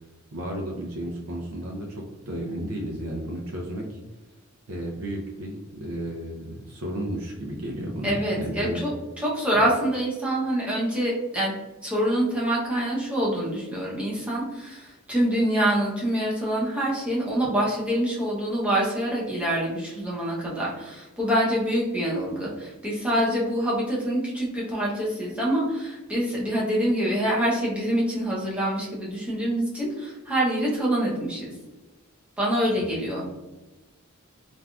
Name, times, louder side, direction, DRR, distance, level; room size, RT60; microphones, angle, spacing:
voice 1, 0.3-4.0 4.7-8.8 32.8-32.9, right 1 dB, 75° right, -1 dB, 0.5 m, -33 dB
voice 2, 8.0-8.9 9.2-11.5 11.8-31.5 32.4-33.3, right 1 dB, 5° right, -5 dB, 0.7 m, -25 dB
3.3 x 2.5 x 2.3 m, 1.1 s
head